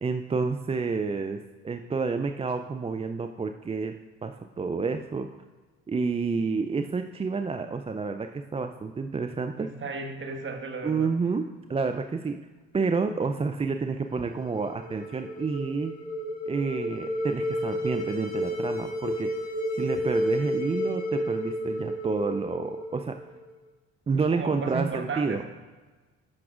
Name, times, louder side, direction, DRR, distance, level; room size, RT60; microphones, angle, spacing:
voice 1, 0.0-3.9 4.2-5.3 5.9-9.7 10.8-12.4 12.7-15.9 16.5-23.2 24.1-25.5, right 4 dB, 20° right, 7 dB, 0.4 m, -29 dB
voice 2, 9.6-11.1 24.2-25.4, right 4 dB, 40° right, 4 dB, 1.4 m, -34 dB
sound 1, 14.3-23.5, equal, 25° left, 1.6 m, -32 dB
15.0 x 5.9 x 2.5 m, 1.3 s
supercardioid pair, 60°, 31 cm